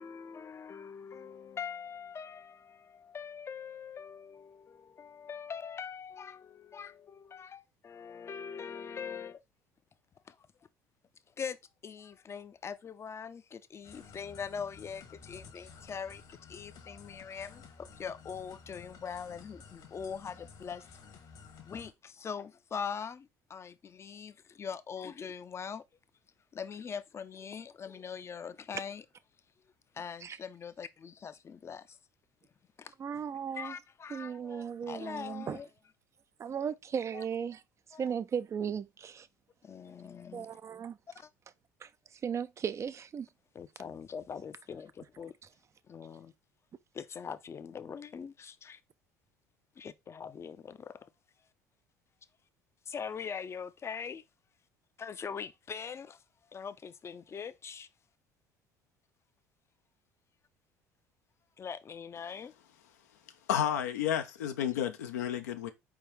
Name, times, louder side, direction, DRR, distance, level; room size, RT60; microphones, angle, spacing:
voice 1, 0.0-9.4 10.3-10.4 11.4-11.6 11.8-20.8 21.6-25.8 26.5-29.0 30.0-32.0 32.8-32.9 33.5-35.6 37.1-37.2 37.9-38.0 39.6-40.5 41.1-41.3 43.5-45.3 45.9-46.3 46.9-48.8 49.8-51.1 52.9-54.2 55.0-56.2 56.5-57.9 61.6-62.5, left 6 dB, 30° left, 0.5 m, -42 dB
sound 1, 13.8-21.9, left 5 dB, 55° left, 1.2 m, -53 dB
voice 2, 33.0-33.8 34.1-35.6 36.4-37.6 38.0-39.3 40.3-41.0 41.8-43.3, right 7 dB, 35° right, 0.4 m, -36 dB
voice 3, 63.5-65.7, left 10 dB, 80° left, 0.6 m, -31 dB
4.5 x 3.5 x 3.1 m
hypercardioid pair, 65°, 9 cm